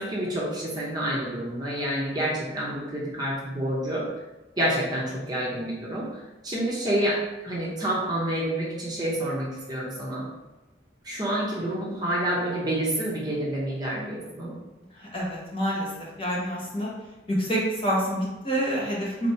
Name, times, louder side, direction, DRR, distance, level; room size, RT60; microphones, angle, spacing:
voice 1, 0.0-4.0 4.6-7.2 7.4-10.3 11.0-14.6, right 1 dB, 20° right, -5 dB, 0.8 m, -28 dB
voice 2, 15.0-15.9 16.2-16.9 17.3-19.3, equal, 30° left, -5 dB, 1.2 m, -27 dB
4.3 x 2.9 x 4.2 m, 1.1 s
head